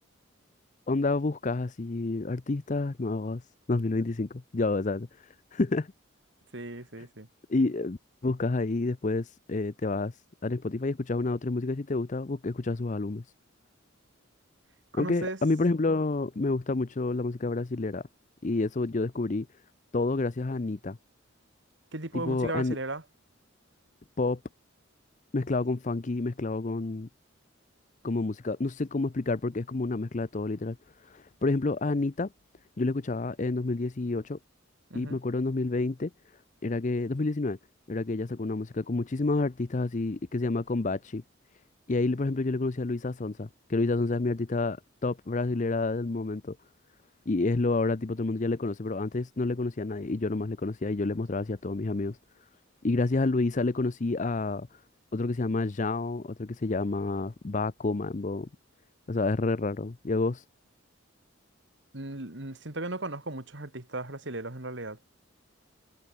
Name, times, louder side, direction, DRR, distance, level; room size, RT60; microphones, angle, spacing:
voice 1, 0.9-3.4 3.7-5.9 7.5-13.2 14.9-18.0 18.4-19.5 19.9-21.0 22.1-22.8 24.2-24.4 25.3-27.1 28.0-30.8 31.0-32.3 32.8-34.4 34.9-36.1 36.6-37.6 37.9-41.2 41.9-46.6 47.3-52.2 52.8-54.7 55.1-58.5 59.1-60.4, left 3 dB, 35° left, 0.6 m, -29 dB
voice 2, 6.5-7.3 14.9-15.4 21.9-23.0 34.9-35.2 61.9-65.0, right 2 dB, 60° right, 2.5 m, -36 dB
head